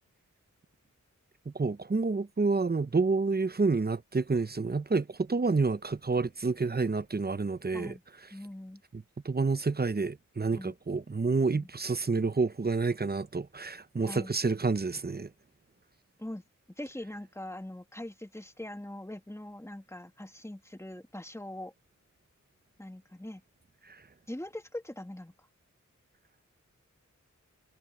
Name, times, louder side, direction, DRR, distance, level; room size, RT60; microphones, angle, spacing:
voice 1, 1.5-7.9 8.9-15.3 23.9-24.0, right 4 dB, 30° right, 0.8 m, -29 dB
voice 2, 8.3-8.8 10.5-10.8 11.5-11.7 14.0-14.3 16.2-16.4 16.8-21.7 22.8-23.4 24.3-25.3, left 1 dB, 10° left, 2.4 m, -42 dB
cardioid pair, 45°, 32 cm